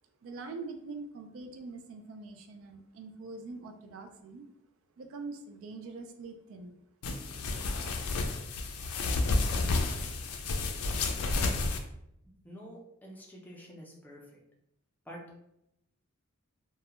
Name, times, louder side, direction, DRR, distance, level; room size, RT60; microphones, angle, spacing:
voice 1, 0.2-4.5 5.0-6.8, right 3 dB, 65° right, 5 dB, 0.3 m, -44 dB
sound 1, 7.0-11.8, left 3 dB, 90° left, 0.4 m, -31 dB
voice 2, 12.4-14.2 15.1-15.2, equal, 10° left, -2 dB, 0.4 m, -48 dB
2.2 x 2.1 x 2.9 m, 0.80 s
head